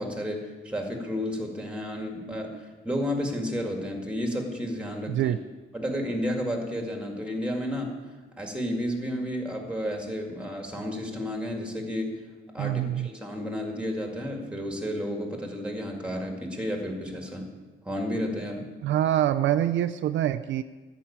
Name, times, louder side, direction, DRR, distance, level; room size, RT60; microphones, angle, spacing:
voice 1, 0.0-5.3 5.7-8.0 8.4-12.1 12.5-17.5 17.8-18.7, equal, 5° right, 2 dB, 2.1 m, -32 dB
voice 2, 12.6-13.1 18.8-20.6, right 12 dB, 65° right, 10 dB, 0.5 m, -25 dB
14.0 x 6.1 x 8.7 m, 1.3 s
cardioid pair, 145°, 21 cm